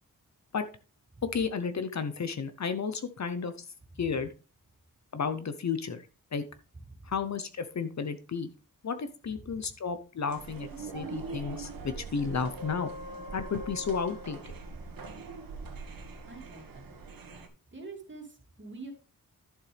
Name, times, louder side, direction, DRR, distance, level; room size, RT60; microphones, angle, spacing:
voice 1, 1.2-3.5 4.0-4.3 5.1-6.0 6.3-6.4 7.1-8.5 8.8-12.9 13.3-14.4, left 5 dB, 55° left, 10 dB, 0.9 m, -32 dB
sound 1, 10.3-17.5, right 3 dB, 85° right, 1.8 m, -42 dB
voice 2, 16.2-16.9 17.7-18.9, right 3 dB, 35° right, 2 dB, 2.5 m, -46 dB
11.5 x 6.8 x 3.4 m, 0.34 s
wide cardioid pair, 120°, 34 cm